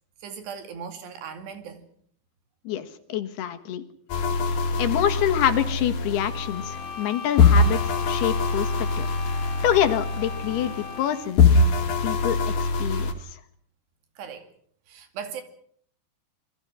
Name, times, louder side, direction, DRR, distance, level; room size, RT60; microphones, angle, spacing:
voice 1, 0.2-1.9 14.2-14.5 14.9-15.4, right 7 dB, 90° right, 4.6 m, -38 dB
voice 2, 2.7-3.8 4.8-9.1 9.3-11.4 12.0-13.4, left 11 dB, 75° left, 3.6 m, -26 dB
sound 1, 4.1-7.1 7.4-11.1 11.4-13.1, left 4 dB, 55° left, 3.5 m, -23 dB
sound 2, 6.2-11.5, left 5 dB, 35° left, 3.4 m, -39 dB
28.0 x 22.0 x 6.4 m
omnidirectional pair, 4.7 m